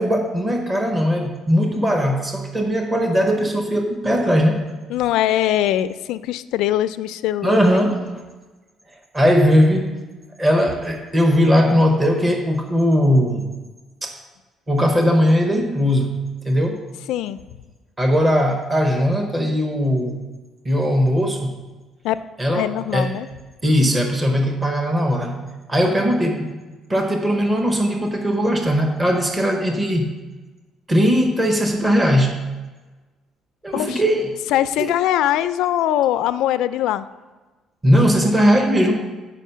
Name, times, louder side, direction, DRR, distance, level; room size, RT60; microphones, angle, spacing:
voice 1, 0.0-4.6 7.4-8.1 9.1-9.9 10.4-13.5 14.0-14.1 14.7-16.2 16.4-16.9 18.0-20.2 20.6-21.5 22.4-23.1 23.6-25.4 25.7-26.6 26.9-30.2 30.9-32.4 33.6-34.3 34.8-34.9 37.8-39.0, equal, 15° right, 2 dB, 0.8 m, -19 dB
voice 2, 4.9-7.8 17.1-17.4 22.0-22.2 22.5-23.3 33.7-34.0 34.5-37.1, left 12 dB, 90° left, 13 dB, 0.3 m, -22 dB
9.2 x 5.1 x 5.5 m, 1.2 s
cardioid pair, 180°, 0 cm